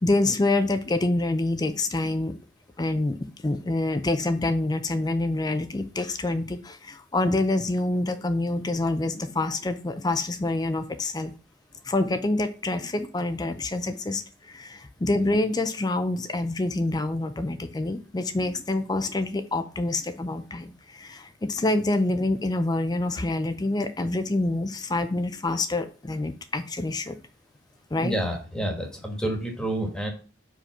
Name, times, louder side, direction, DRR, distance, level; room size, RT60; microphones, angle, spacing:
voice 1, 0.0-2.3 2.8-3.2 3.4-11.3 11.8-27.2 27.9-28.1, left 2 dB, 20° left, 9 dB, 0.4 m, -26 dB
voice 2, 28.0-30.1, right 1 dB, 5° left, 2 dB, 1.4 m, -29 dB
5.1 x 5.0 x 5.8 m, 0.37 s
head